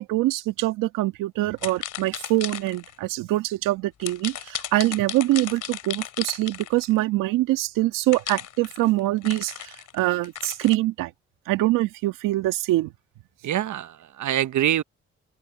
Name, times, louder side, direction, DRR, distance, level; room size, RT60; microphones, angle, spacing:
voice 1, 0.0-11.1 11.5-12.9, right 17 dB, 85° right, 2.0 m, -24 dB
sound 1, 1.6-2.9 4.0-7.0 8.1-10.8, left 10 dB, 70° left, 3.0 m, -35 dB
voice 2, 13.4-14.8, right 11 dB, 65° right, 1.0 m, -25 dB
open air
supercardioid pair, 50°, 32 cm